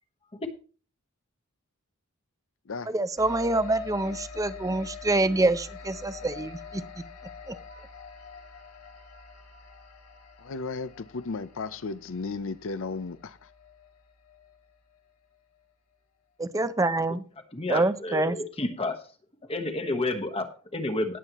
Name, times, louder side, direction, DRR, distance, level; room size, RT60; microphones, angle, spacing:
voice 1, 2.9-6.8 7.5-7.6 16.4-17.2 17.7-18.4, right 2 dB, 15° right, 13 dB, 0.6 m, -26 dB
sound 1, 3.2-15.0, left 5 dB, 85° left, 2.5 m, -45 dB
voice 2, 10.4-13.5, left 4 dB, 60° left, 13 dB, 0.6 m, -34 dB
voice 3, 17.5-19.1 19.4-21.2, left 2 dB, 25° left, 5 dB, 1.2 m, -30 dB
18.0 x 7.4 x 3.0 m, 0.37 s
head